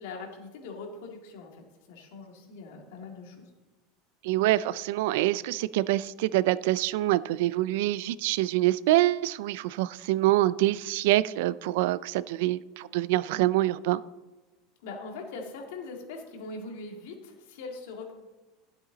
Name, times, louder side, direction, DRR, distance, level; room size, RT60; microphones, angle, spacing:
voice 1, 0.0-3.5 14.8-18.1, left 3 dB, 75° left, 2 dB, 2.1 m, -41 dB
voice 2, 4.2-14.0, right 16 dB, 70° right, 18 dB, 0.3 m, -25 dB
12.5 x 7.7 x 3.9 m, 1.1 s
supercardioid pair, 155°, 0 cm